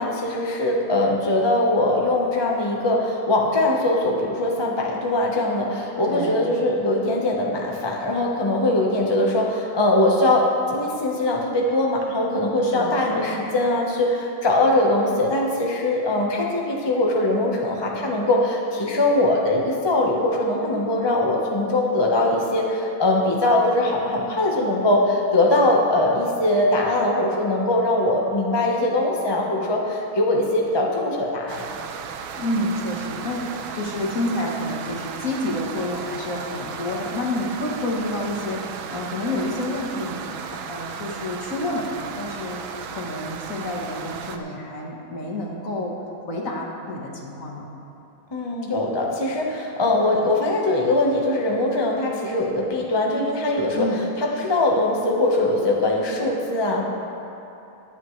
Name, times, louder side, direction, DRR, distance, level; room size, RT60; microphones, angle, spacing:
voice 1, 0.0-31.6 48.3-56.8, left 1 dB, 25° left, -1 dB, 0.5 m, -21 dB
voice 2, 6.0-6.4 12.6-13.2 32.3-33.5 33.7-42.6 42.9-46.0 46.3-47.7 53.7-54.1, left 1 dB, 45° left, -1 dB, 1.4 m, -29 dB
sound 1, 31.5-44.4, right 6 dB, 75° right, 1.4 m, -35 dB
22.0 x 8.3 x 3.2 m, 2.9 s
omnidirectional pair, 2.3 m